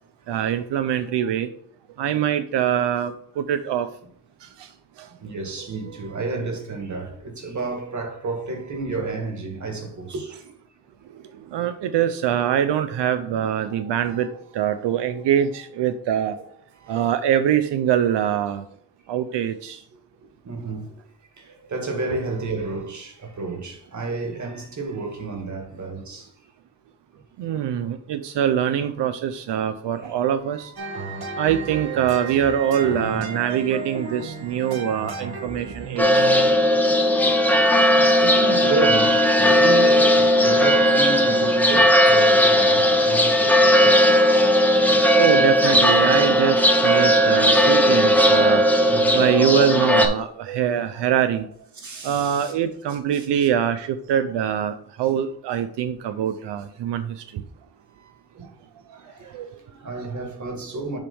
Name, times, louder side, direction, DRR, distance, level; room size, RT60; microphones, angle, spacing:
voice 1, 0.3-1.5 2.0-3.9 11.5-16.4 16.9-18.6 19.1-19.8 27.4-30.7 31.4-36.3 45.1-48.6 49.1-51.5 52.0-57.4 59.3-59.4, right 9 dB, 85° right, 0.6 m, -23 dB
voice 2, 5.2-10.4 14.1-14.3 16.3-16.4 16.8-17.1 19.9-20.0 20.4-21.0 21.4-26.3 29.9-30.1 30.5-30.9 32.8-33.4 37.9-44.2 48.9-49.2 50.7-51.0 51.8-52.5 53.1-53.3 57.9-58.5 58.9-61.0, right 3 dB, 45° right, 2.0 m, -31 dB
sound 1, 30.8-36.5, right 5 dB, 65° right, 1.4 m, -33 dB
sound 2, 36.0-50.1, equal, 5° left, 1.0 m, -17 dB
7.3 x 3.4 x 5.4 m
cardioid pair, 115°, 41 cm